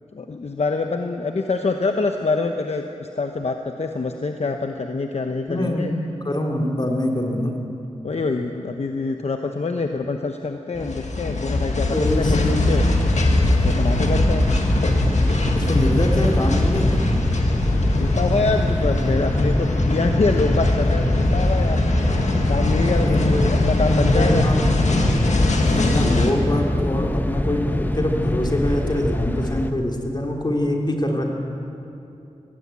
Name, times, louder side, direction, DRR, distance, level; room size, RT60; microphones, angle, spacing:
voice 1, 0.1-5.9 7.3-7.6 8.0-12.8 13.6-14.5 17.9-21.8 22.5-24.4, left 3 dB, 65° left, 4 dB, 1.0 m, -25 dB
voice 2, 5.5-5.9 6.2-7.6 11.9-12.3 15.5-17.1 23.1-23.5 24.0-24.5 25.6-31.2, left 1 dB, 40° left, 0 dB, 3.2 m, -24 dB
sound 1, 10.7-26.3, left 2 dB, 85° left, 1.9 m, -22 dB
sound 2, 12.0-29.7, left 1 dB, 15° left, 1.1 m, -23 dB
19.0 x 17.0 x 8.4 m, 2.7 s
wide cardioid pair, 65°, 12 cm